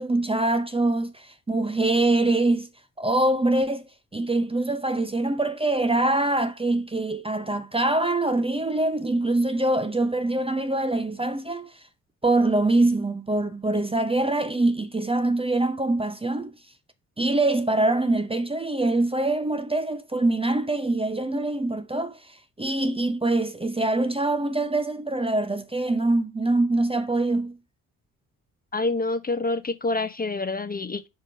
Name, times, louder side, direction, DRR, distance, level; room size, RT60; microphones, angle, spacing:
voice 1, 0.0-2.7 3.0-11.8 12.2-16.5 17.2-27.6, right 2 dB, 15° right, 0.7 m, -24 dB
voice 2, 28.7-31.1, left 3 dB, 20° left, 0.8 m, -27 dB
5.2 x 4.0 x 5.1 m
hypercardioid pair, 45°, 42 cm